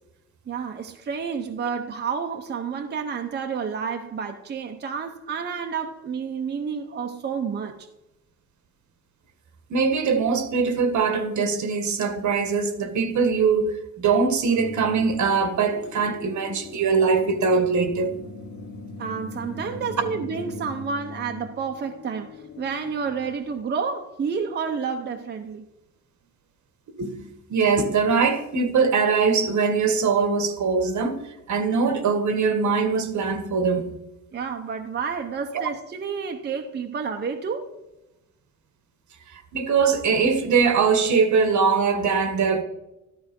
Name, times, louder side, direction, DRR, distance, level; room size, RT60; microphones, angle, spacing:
voice 1, 0.5-7.9 19.0-25.7 34.3-37.7, right 6 dB, 35° right, 0.8 m, -30 dB
voice 2, 9.7-18.1 27.0-31.2 31.5-33.9 39.3-42.6, right 5 dB, 65° right, 1.6 m, -22 dB
sound 1, 14.5-23.3, left 3 dB, 80° left, 2.2 m, -40 dB
14.0 x 12.5 x 5.3 m
wide cardioid pair, 180°, 31 cm